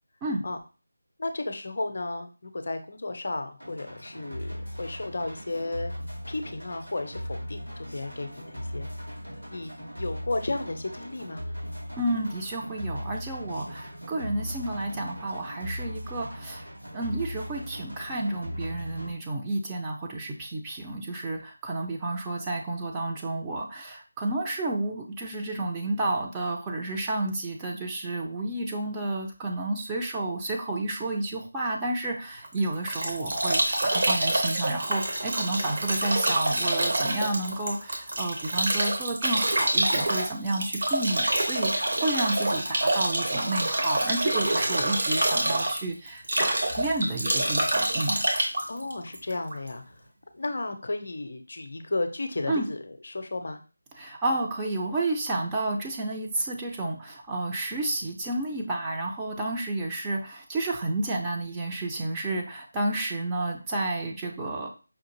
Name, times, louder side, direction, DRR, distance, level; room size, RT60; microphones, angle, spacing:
voice 1, 1.2-5.9 6.3-8.9 9.5-9.7 10.0-11.4 48.7-50.0 50.3-53.6, left 2 dB, 45° left, 7 dB, 0.5 m, -33 dB
sound 1, 3.6-19.1, equal, 85° right, 2.1 m, -38 dB
voice 2, 12.0-16.6 16.9-48.2 52.5-52.7 54.0-64.7, right 2 dB, 10° right, -2 dB, 0.4 m, -31 dB
Bathtub (filling or washing) / Drip / Trickle dribble, 32.4-49.7, right 1 dB, 50° right, 0.9 m, -26 dB
5.2 x 2.4 x 2.9 m, 0.33 s
figure-of-eight pair, 160°, 0 cm